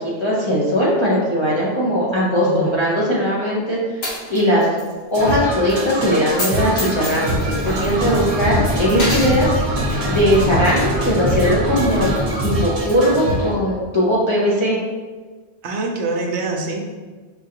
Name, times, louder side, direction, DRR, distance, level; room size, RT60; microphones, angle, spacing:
voice 1, 0.2-4.0 4.3-4.7 5.1-9.5 10.1-12.1 12.4-14.8, equal, 35° left, -7 dB, 0.6 m, -19 dB
voice 2, 2.1-2.8 8.0-8.5 15.6-16.8, right 2 dB, 85° right, 2 dB, 0.9 m, -26 dB
Coin (dropping), 4.0-4.9 5.2-5.3 6.3-6.5 6.8-8.4 8.9-9.3, left 1 dB, 65° left, 1.3 m, -27 dB
sound 1, 5.1-13.5, right 1 dB, 65° right, 1.2 m, -24 dB
sound 2, 7.3-12.3, left 1 dB, 15° right, 0.9 m, -25 dB
5.5 x 2.5 x 2.7 m, 1.4 s
omnidirectional pair, 1.1 m